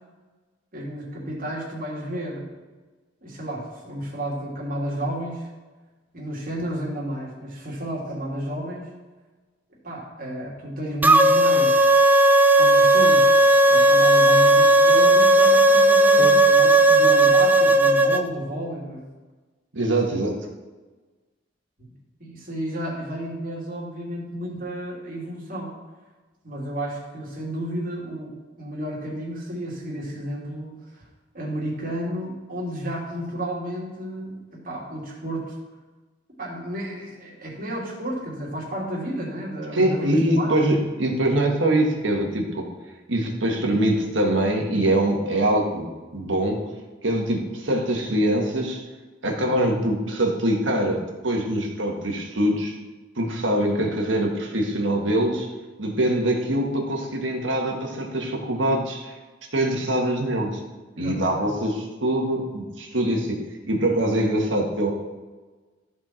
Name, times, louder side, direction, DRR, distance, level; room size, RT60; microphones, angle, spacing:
voice 1, 0.7-2.5 3.2-5.5 6.1-8.9 9.8-11.8 12.5-13.3 13.7-19.0 21.8-21.9 22.2-25.7 26.4-31.0 31.3-34.4 34.6-35.5 36.4-40.5 61.0-61.5, right 1 dB, 50° right, -4 dB, 2.9 m, -32 dB
sound 1, 11.0-18.2, right 1 dB, 10° right, 0.4 m, -15 dB
voice 2, 19.7-20.4 39.7-42.7 43.1-46.6 47.0-48.8 49.2-52.8 53.2-55.5 55.8-59.1 59.5-60.6 61.0-63.4 63.7-64.9, right 1 dB, 80° right, 1 dB, 1.7 m, -23 dB
14.0 x 4.6 x 4.4 m, 1.3 s
head